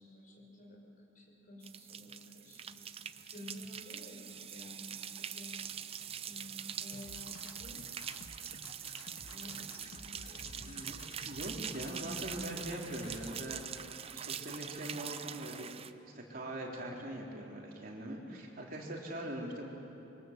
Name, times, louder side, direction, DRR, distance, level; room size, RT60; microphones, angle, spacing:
voice 1, 0.0-2.8 3.3-5.6 6.2-7.8 9.3-10.7, left 1 dB, 45° left, -1 dB, 5.6 m, -52 dB
sound 1, 1.6-15.9, right 8 dB, 30° right, 0.6 m, -44 dB
sound 2, 6.9-13.6, left 2 dB, 90° left, 1.6 m, -52 dB
voice 2, 10.5-15.8 16.0-19.7, right 1 dB, 45° right, -2 dB, 3.9 m, -42 dB
25.5 x 23.0 x 7.6 m, 2.9 s
head